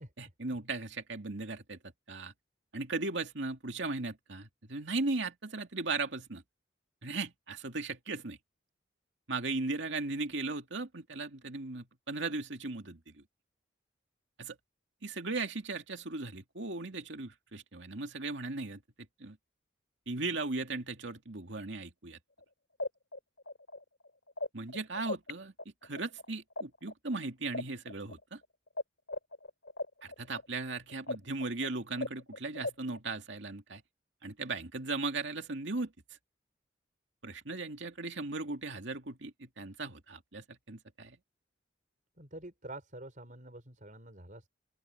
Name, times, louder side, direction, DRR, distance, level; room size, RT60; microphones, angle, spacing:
voice 1, 0.2-1.8 2.1-2.3 2.7-6.4 7.0-8.4 9.3-13.2 14.4-14.6 15.0-18.8 19.2-19.4 20.1-22.2 24.5-25.5 25.8-28.4 30.2-33.8 34.2-35.9 37.2-41.2, right 3 dB, 75° right, 2.4 m, -37 dB
sound 1, 22.4-22.5 22.8-25.3 25.6-28.8 29.1-33.0, left 2 dB, 70° left, 3.4 m, -38 dB
voice 2, 42.2-44.5, right 1 dB, 45° right, 6.3 m, -47 dB
open air
head